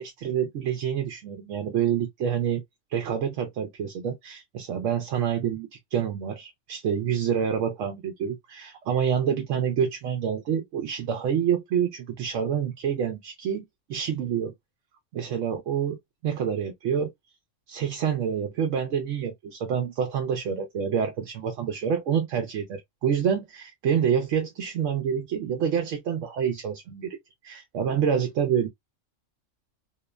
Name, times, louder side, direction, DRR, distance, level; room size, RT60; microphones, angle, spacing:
voice 1, 0.0-2.6 2.9-13.6 13.9-14.5 15.1-16.0 16.2-17.1 17.7-27.2 27.4-28.7, right 8 dB, 80° right, 0.9 m, -27 dB
2.8 x 2.1 x 2.2 m
omnidirectional pair, 1.3 m